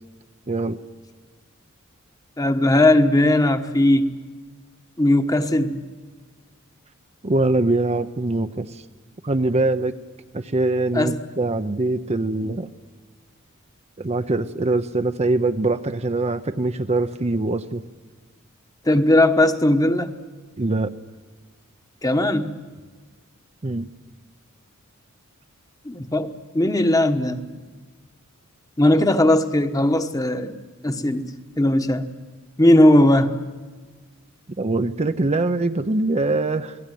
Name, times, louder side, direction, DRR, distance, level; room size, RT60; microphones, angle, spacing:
voice 1, 0.5-0.8 7.2-8.8 9.2-9.9 10.3-12.7 14.0-17.8 20.6-20.9 23.6-23.9 34.6-36.8, right 2 dB, 30° right, 9 dB, 0.7 m, -23 dB
voice 2, 2.4-4.1 5.0-5.8 10.9-11.2 12.4-12.5 18.8-20.1 22.0-22.6 25.8-27.4 28.8-30.6 30.8-31.2 31.6-32.1 32.6-33.4, left 1 dB, 15° left, 8 dB, 1.2 m, -18 dB
28.5 x 19.5 x 9.3 m, 1.4 s
head